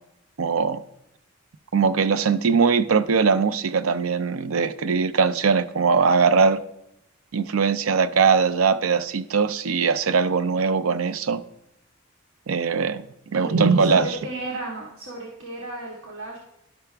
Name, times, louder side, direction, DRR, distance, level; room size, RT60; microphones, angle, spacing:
voice 1, 0.4-0.8 1.7-6.6 7.3-11.4 12.5-13.1 13.3-14.1, right 5 dB, 90° right, 11 dB, 0.5 m, -21 dB
voice 2, 13.3-16.4, right 2 dB, 70° right, -3 dB, 1.7 m, -34 dB
12.0 x 5.8 x 3.4 m, 0.81 s
head